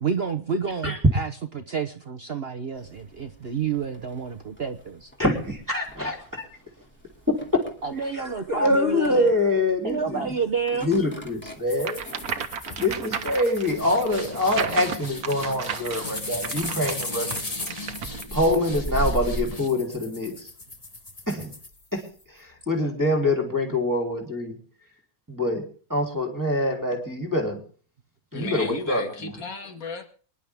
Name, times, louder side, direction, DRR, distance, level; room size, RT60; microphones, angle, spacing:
voice 1, 0.0-5.1 7.8-9.3 9.8-10.9, right 5 dB, 45° right, 7 dB, 1.0 m, -29 dB
sound 1, 2.7-19.5, right 2 dB, 5° left, 2.7 m, -40 dB
voice 2, 5.2-6.4 7.3-7.6 8.1-10.3 10.8-12.0 12.8-17.5 18.3-20.5 21.3-21.5 21.9-22.1 22.4-24.6 25.3-27.6 28.3-29.0, left 1 dB, 10° right, 1 dB, 3.3 m, -25 dB
sound 2, 11.7-22.2, left 2 dB, 25° left, 1.6 m, -37 dB
sound 3, 11.8-18.2, right 7 dB, 70° right, 1.5 m, -34 dB
voice 3, 28.3-30.1, left 4 dB, 60° left, 5 dB, 2.5 m, -34 dB
24.5 x 11.0 x 3.6 m, 0.42 s
omnidirectional pair, 1.7 m